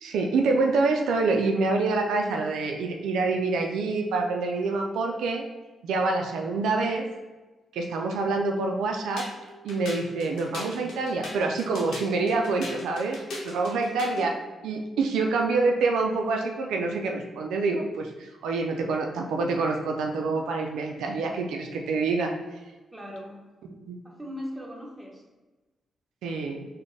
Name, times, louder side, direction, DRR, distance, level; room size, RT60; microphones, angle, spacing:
voice 1, 0.0-5.5 5.8-7.1 7.7-9.3 9.6-14.3 14.6-22.6 23.9-24.0 26.2-26.7, right 3 dB, 85° right, 2 dB, 0.3 m, -26 dB
sound 1, 9.2-14.3, left 1 dB, 80° left, 0.8 m, -39 dB
voice 2, 13.9-14.3 22.9-23.4 24.0-25.2, equal, 10° right, -2 dB, 1.0 m, -39 dB
4.0 x 2.1 x 3.3 m, 1.2 s
cardioid pair, 60°, 0 cm